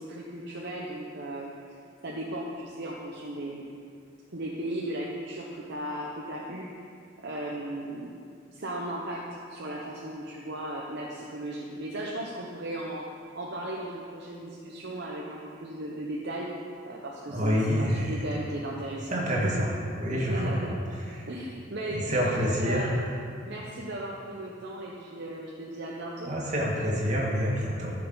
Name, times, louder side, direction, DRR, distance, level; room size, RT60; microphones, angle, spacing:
voice 1, 0.0-1.8 2.0-3.6 4.3-6.7 7.2-8.1 8.5-9.2 9.5-13.0 13.3-16.5 16.8-19.7 20.3-20.8 21.3-23.0 23.4-26.3, right 1 dB, 55° right, -3 dB, 0.9 m, -36 dB
voice 2, 17.3-18.2 19.1-19.7 20.0-20.6 21.1-21.3 21.9-22.9 26.3-27.9, equal, 40° right, -4 dB, 2.0 m, -27 dB
13.0 x 6.7 x 4.0 m, 2.3 s
head